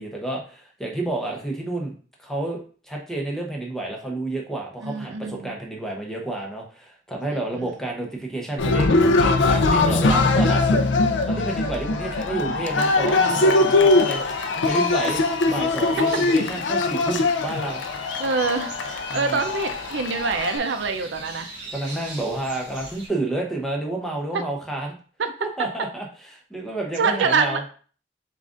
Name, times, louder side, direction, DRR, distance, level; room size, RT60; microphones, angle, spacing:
voice 1, 0.0-1.9 2.2-2.6 2.9-8.9 9.2-10.8 11.3-14.2 14.6-17.8 19.1-19.4 21.7-24.9 25.4-26.1 26.5-27.6, right 2 dB, ahead, 0 dB, 0.8 m, -30 dB
voice 2, 4.8-5.5 7.3-7.7 12.3-12.6 16.0-16.1 18.2-21.5 25.2-25.3 27.0-27.7, right 4 dB, 75° right, 7 dB, 0.5 m, -25 dB
Cheering, 8.6-20.6, left 3 dB, 80° left, 0.4 m, -21 dB
sound 1, 13.1-23.1, right 2 dB, 60° right, 1.6 m, -41 dB
7.3 x 2.5 x 2.5 m, 0.41 s
head